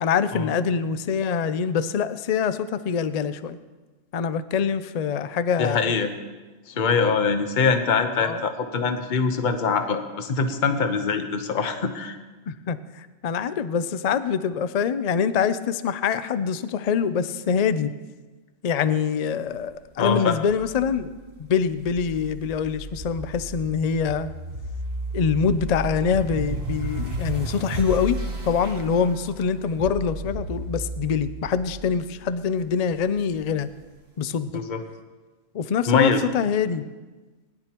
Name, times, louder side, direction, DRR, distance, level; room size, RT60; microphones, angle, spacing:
voice 1, 0.0-3.6 4.1-6.0 8.2-8.4 12.5-17.9 18.6-21.1 21.4-24.3 25.1-28.2 28.5-33.7 34.2-34.5 35.5-36.9, left 6 dB, 60° left, 13 dB, 0.4 m, -24 dB
voice 2, 5.6-6.1 6.7-12.2 20.0-20.4 34.5-34.8 35.9-36.2, left 5 dB, 40° left, 7 dB, 1.0 m, -23 dB
sound 1, 20.5-33.7, right 1 dB, 50° right, 1.6 m, -34 dB
20.5 x 11.0 x 3.0 m, 1.2 s
omnidirectional pair, 1.3 m